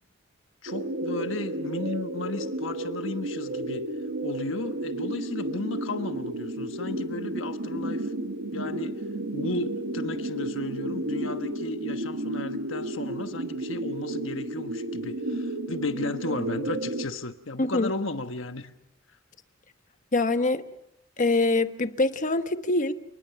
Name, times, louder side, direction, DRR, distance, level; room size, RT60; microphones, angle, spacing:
voice 1, 0.6-3.9 4.2-8.1 8.5-9.0 9.3-18.7, left 2 dB, 70° left, 1.3 m, -34 dB
sound 1, 0.7-17.1, right 1 dB, 75° right, 1.4 m, -32 dB
voice 2, 17.6-17.9 20.1-20.6 21.2-22.9, left 2 dB, 40° left, 1.2 m, -24 dB
30.0 x 19.5 x 5.9 m
head